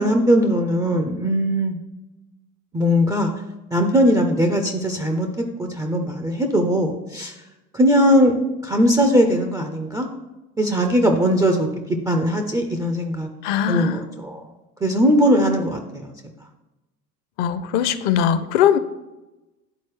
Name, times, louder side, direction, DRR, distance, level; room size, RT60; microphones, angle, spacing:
voice 1, 0.0-1.8 2.7-3.3 3.7-5.3 5.6-7.3 7.7-10.1 10.6-13.3 13.7-14.4 14.8-16.1, equal, 10° right, 4 dB, 0.3 m, -19 dB
voice 2, 13.4-14.0 17.4-18.8, left 9 dB, 45° left, 13 dB, 0.6 m, -20 dB
10.5 x 4.1 x 3.1 m, 1.0 s
figure-of-eight pair, 75°, 46 cm